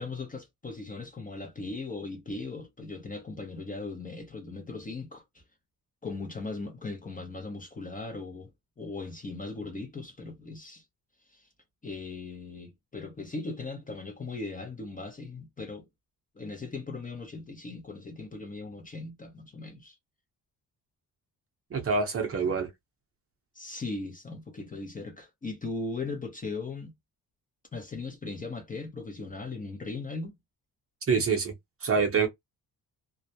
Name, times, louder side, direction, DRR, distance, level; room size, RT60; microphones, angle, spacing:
voice 1, 0.0-5.2 6.0-8.5 8.8-10.8 11.3-11.5 11.8-15.9 16.3-20.0 23.5-26.9 27.7-30.3, left 3 dB, 20° left, 0.6 m, -38 dB
voice 2, 21.7-22.7 31.1-31.5 31.8-32.3, right 5 dB, 35° right, 0.7 m, -26 dB
2.3 x 2.0 x 2.7 m
cardioid pair, 140°, 40 cm